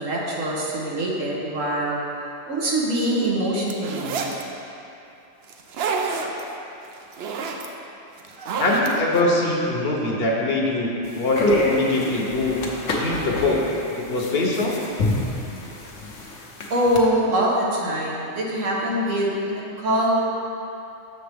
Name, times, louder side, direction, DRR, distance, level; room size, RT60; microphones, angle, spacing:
voice 1, 0.0-2.0 2.5-4.3 8.4-8.5 16.7-20.1, right 1 dB, 85° right, -4 dB, 1.5 m, -24 dB
sound 1, 3.7-4.4 5.5-6.4 6.9-7.7 8.2-9.2, right 4 dB, 65° right, 0.7 m, -28 dB
voice 2, 8.6-12.6 12.9-13.6 14.0-14.8, left 2 dB, 55° left, -2 dB, 1.1 m, -23 dB
sound 2, 11.1-17.0, left 1 dB, 75° left, 1.2 m, -27 dB
7.0 x 6.8 x 3.4 m, 2.8 s
omnidirectional pair, 1.3 m